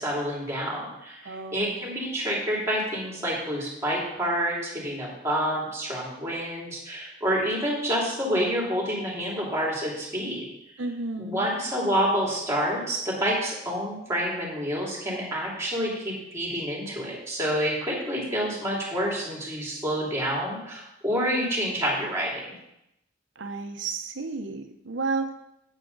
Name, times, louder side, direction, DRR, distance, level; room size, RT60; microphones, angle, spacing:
voice 1, 0.0-10.5 11.2-22.5, equal, 15° right, -4 dB, 2.7 m, -28 dB
voice 2, 1.2-1.8 10.8-11.5 23.4-25.3, right 3 dB, 75° right, 7 dB, 0.8 m, -32 dB
8.3 x 8.1 x 3.9 m, 0.84 s
head